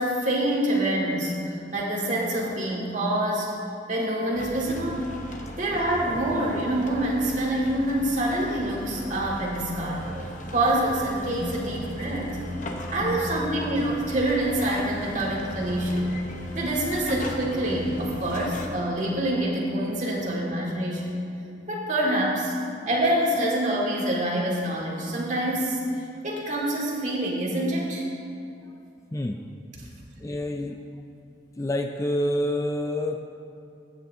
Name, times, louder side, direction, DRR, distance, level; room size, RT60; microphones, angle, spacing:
voice 1, 0.0-3.5 3.9-5.1 5.6-10.3 10.5-12.4 12.9-16.1 16.5-21.2 21.7-22.5 22.9-25.8 26.2-28.0, right 1 dB, 45° right, -4 dB, 1.9 m, -26 dB
sound 1, 4.3-18.7, equal, 45° left, 0.8 m, -37 dB
voice 2, 13.0-13.7 29.1-29.4 30.2-30.8 31.6-33.2, left 1 dB, 20° left, 5 dB, 0.3 m, -29 dB
15.5 x 9.2 x 2.7 m, 2.6 s
head